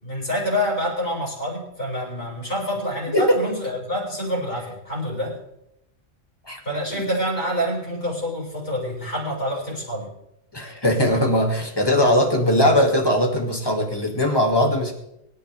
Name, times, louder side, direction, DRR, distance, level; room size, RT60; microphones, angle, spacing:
voice 1, 0.0-5.4 6.6-10.1, equal, 40° left, -5 dB, 6.2 m, -27 dB
voice 2, 10.5-14.9, left 1 dB, 15° left, 1 dB, 2.2 m, -20 dB
24.0 x 10.5 x 3.4 m, 0.81 s
omnidirectional pair, 1.4 m